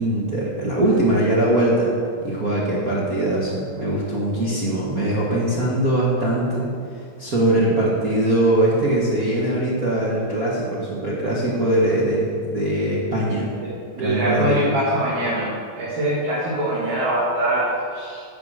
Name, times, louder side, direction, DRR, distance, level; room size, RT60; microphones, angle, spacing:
voice 1, 0.0-1.9 2.2-6.7 6.9-13.5 14.0-14.7, right 1 dB, 40° right, -5 dB, 1.3 m, -21 dB
voice 2, 14.0-15.5 15.8-18.2, right 1 dB, 65° right, -8 dB, 3.5 m, -23 dB
11.0 x 7.2 x 6.5 m, 2.5 s
omnidirectional pair, 3.8 m